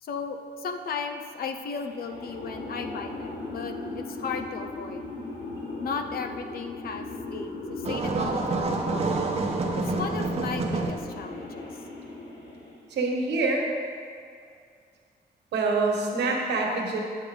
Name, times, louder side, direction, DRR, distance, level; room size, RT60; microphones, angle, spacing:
voice 1, 0.0-5.0 5.8-9.0 9.8-11.8 16.7-16.8, left 5 dB, 60° left, 7 dB, 0.7 m, -35 dB
sound 1, 1.8-12.9, left 2 dB, 80° left, 1.7 m, -38 dB
sound 2, 7.8-10.9, right 3 dB, 35° right, 0.9 m, -28 dB
voice 2, 12.9-13.7 15.5-17.0, right 3 dB, 85° right, -1 dB, 1.5 m, -25 dB
9.7 x 7.5 x 3.8 m, 2.3 s
wide cardioid pair, 145°, 17 cm